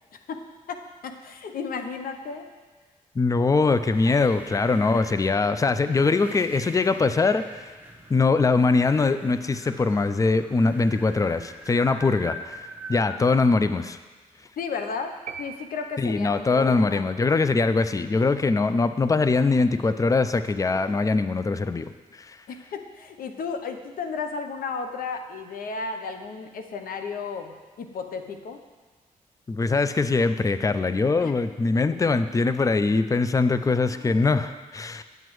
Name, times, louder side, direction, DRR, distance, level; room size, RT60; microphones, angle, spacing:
voice 1, 0.1-2.5 4.1-4.2 14.6-17.1 22.5-28.6 31.2-31.3 33.8-34.3, left 5 dB, 70° left, 6 dB, 0.7 m, -34 dB
voice 2, 3.2-7.7 8.1-14.0 16.0-21.9 22.2-22.4 29.5-35.0, left 3 dB, 20° left, 11 dB, 0.4 m, -22 dB
sound 1, 3.5-13.3, right 1 dB, 10° right, 0.9 m, -44 dB
sound 2, 15.3-16.5, right 7 dB, 55° right, 0.4 m, -41 dB
9.1 x 7.5 x 3.1 m, 1.3 s
supercardioid pair, 55°, 15 cm